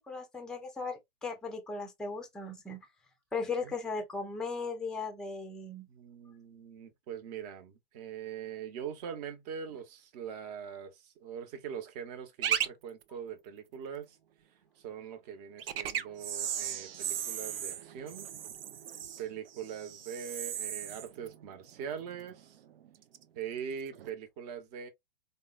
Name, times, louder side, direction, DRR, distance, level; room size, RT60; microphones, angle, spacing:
voice 1, 0.0-2.9 3.3-5.9, left 4 dB, ahead, 0.5 m, -37 dB
voice 2, 5.9-14.2 14.8-18.3 19.2-22.6 23.3-24.9, right 8 dB, 45° right, 0.9 m, -42 dB
sound 1, 12.4-12.7 13.0-13.1 15.6-22.4 22.7-23.2 23.9-24.1, right 9 dB, 75° right, 0.5 m, -36 dB
3.6 x 2.2 x 2.3 m
hypercardioid pair, 125°, 29 cm